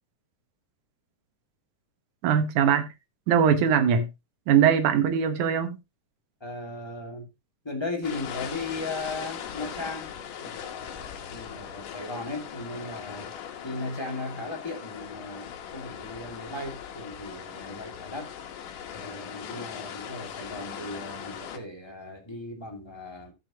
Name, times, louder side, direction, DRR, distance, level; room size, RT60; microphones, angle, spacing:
voice 1, 2.2-2.9 3.3-4.1 4.5-5.8, right 8 dB, 75° right, 2.5 m, -21 dB
voice 2, 6.4-7.3 7.6-10.1 10.4-13.3 13.6-18.3 18.9-23.3, left 2 dB, 10° left, 1.9 m, -37 dB
sound 1, 8.0-21.6, left 9 dB, 80° left, 2.7 m, -39 dB
14.0 x 6.9 x 2.8 m
omnidirectional pair, 3.6 m